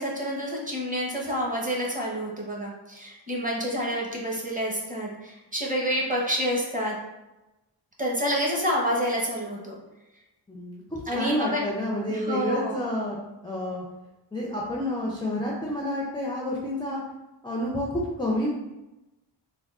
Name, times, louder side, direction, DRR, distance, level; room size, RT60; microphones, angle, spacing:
voice 1, 0.0-7.0 8.0-9.8 11.1-11.7 12.1-12.9, equal, 15° right, -3 dB, 0.8 m, -28 dB
voice 2, 10.5-13.2 13.4-13.8 14.3-17.0 17.4-18.5, left 1 dB, 10° left, -3 dB, 0.4 m, -29 dB
3.5 x 2.3 x 2.4 m, 1.0 s
wide cardioid pair, 80°, 47 cm